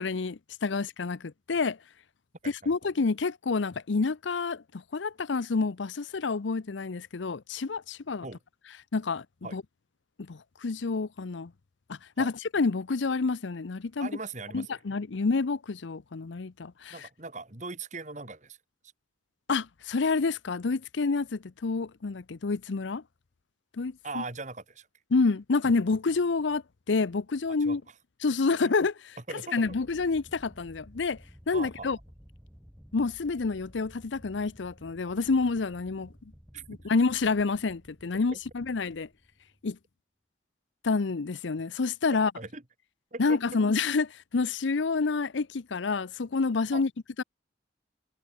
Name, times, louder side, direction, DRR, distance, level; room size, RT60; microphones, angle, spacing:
voice 1, 0.0-1.8 2.7-8.3 8.9-9.2 9.5-9.6 10.2-11.5 11.9-14.1 14.5-17.1 19.5-23.0 23.8-24.2 25.1-26.6 26.9-27.8 28.2-28.9 29.5-31.2 31.5-32.0 32.9-36.3 36.7-39.1 39.6-39.8 40.8-42.3 43.2-46.9 47.2-47.3, left 4 dB, 80° left, 0.6 m, -28 dB
voice 2, 14.0-14.7 16.9-18.6 24.0-24.9 27.6-27.8 29.3-29.8 31.5-31.9 36.5-36.6 38.3-38.4 42.4-42.6 43.1-43.4 46.7-46.8, right 3 dB, 40° right, 2.6 m, -39 dB
sound 1, 29.7-39.7, equal, 5° right, 4.5 m, -54 dB
head